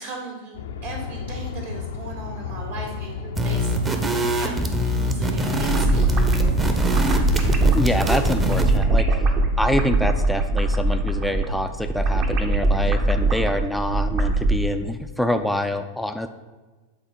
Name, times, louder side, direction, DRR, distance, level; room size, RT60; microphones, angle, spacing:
voice 1, 0.0-6.1, right 2 dB, 60° right, -1 dB, 2.1 m, -37 dB
Aircraft, 0.5-13.4, left 5 dB, 60° left, 0.5 m, -35 dB
sound 1, 3.3-8.8, equal, 15° right, 0.8 m, -24 dB
sound 2, 5.6-14.6, right 2 dB, 40° right, 1.0 m, -21 dB
voice 2, 7.7-9.2 9.6-16.3, left 1 dB, ahead, 7 dB, 0.4 m, -26 dB
7.9 x 4.0 x 5.3 m, 1.3 s
figure-of-eight pair, 90°, 0 cm